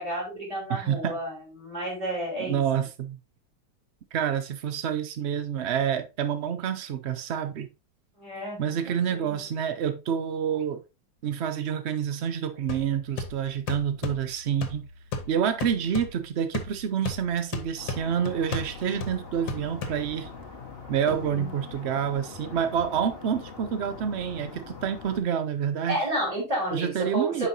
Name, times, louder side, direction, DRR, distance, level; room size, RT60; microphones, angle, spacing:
voice 1, 0.0-2.6 8.2-9.4 21.3-21.5 25.9-27.5, right 1 dB, 20° right, 5.1 m, -31 dB
voice 2, 0.7-1.2 2.4-3.2 4.1-7.7 8.6-10.8 11.2-14.9 15.3-20.3 20.9-26.1 26.7-27.5, right 8 dB, 80° right, 0.6 m, -28 dB
sound 1, 12.7-20.4, left 3 dB, 85° left, 1.8 m, -37 dB
sound 2, 17.8-25.2, left 5 dB, 35° left, 1.5 m, -42 dB
9.0 x 5.6 x 2.7 m
omnidirectional pair, 2.0 m